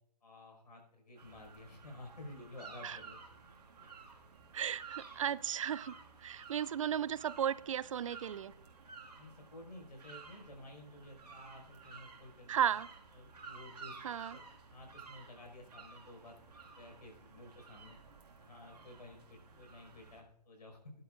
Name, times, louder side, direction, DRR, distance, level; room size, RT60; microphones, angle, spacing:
voice 1, 0.2-3.2 9.1-12.7 13.1-14.0 14.3-16.4 16.8-18.0 18.4-20.9, left 1 dB, 80° left, 2 dB, 5.5 m, -53 dB
sound 1, 1.2-20.2, right 5 dB, 70° right, 2.1 m, -54 dB
voice 2, 4.5-5.9 6.2-8.5 12.5-12.9 14.0-14.4, right 9 dB, 50° right, 19 dB, 0.4 m, -35 dB
18.5 x 11.0 x 2.6 m, 0.75 s
hypercardioid pair, 150°, 21 cm